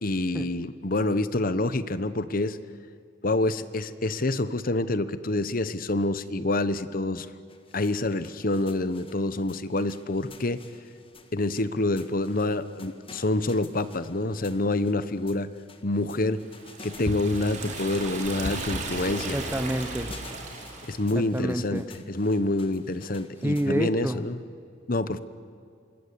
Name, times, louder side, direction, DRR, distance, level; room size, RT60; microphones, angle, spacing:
voice 1, 0.0-2.6 3.2-7.3 7.7-10.6 11.3-15.5 15.8-16.4 16.8-19.4 20.8-24.4 24.9-25.2, left 2 dB, 50° left, 14 dB, 1.0 m, -27 dB
sound 1, 7.5-23.8, left 1 dB, 30° left, 1.7 m, -44 dB
Liquid, 16.5-21.1, right 3 dB, 40° right, 4.4 m, -36 dB
voice 2, 19.3-20.1 21.1-21.9 23.4-24.2, right 1 dB, 10° right, 10 dB, 0.8 m, -28 dB
26.0 x 20.5 x 9.9 m, 2.3 s
head